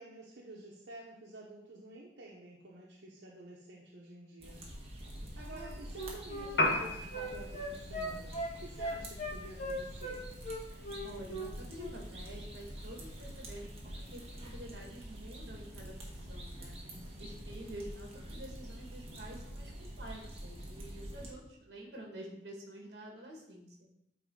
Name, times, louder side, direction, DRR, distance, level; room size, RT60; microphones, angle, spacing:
voice 1, 0.0-4.6 5.4-10.2 16.8-17.2, right 2 dB, 85° right, -3 dB, 0.9 m, -51 dB
sound 1, 4.4-21.3, equal, 35° right, 1.2 m, -46 dB
Wind instrument woodwind instrument, 5.5-10.2 10.4-11.5 11.8-12.0, equal, 45° left, 1.2 m, -39 dB
Piano, 6.5-14.5, left 2 dB, 75° left, 1.2 m, -40 dB
voice 2, 11.0-16.0 16.3-16.8 17.2-23.7, right 1 dB, 60° right, 0 dB, 1.6 m, -48 dB
8.5 x 3.1 x 3.7 m, 0.79 s
head